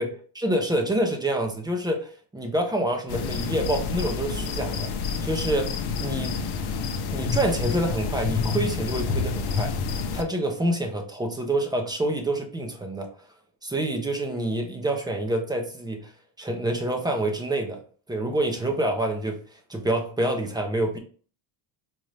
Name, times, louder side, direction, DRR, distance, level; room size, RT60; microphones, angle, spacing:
voice 1, 0.4-4.9 5.2-6.4 7.1-9.7 10.1-13.1 13.6-16.1 16.4-17.8 18.1-19.4 19.7-21.0, right 1 dB, 10° right, 3 dB, 0.4 m, -27 dB
sound 1, 3.1-10.2, left 5 dB, 55° left, 0.6 m, -28 dB
4.2 x 2.5 x 3.2 m, 0.42 s
cardioid pair, 140°, 48 cm